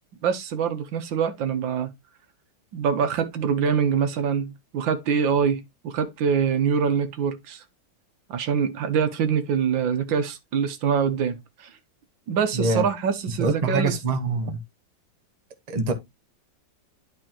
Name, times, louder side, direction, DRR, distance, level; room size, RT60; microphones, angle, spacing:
voice 1, 0.2-1.9 2.7-7.6 8.3-11.7 12.3-13.9, right 7 dB, 80° right, 1.8 m, -24 dB
voice 2, 12.5-12.8 13.4-14.6 15.7-15.9, right 3 dB, 25° right, 1.0 m, -24 dB
11.5 x 4.2 x 2.9 m
omnidirectional pair, 2.0 m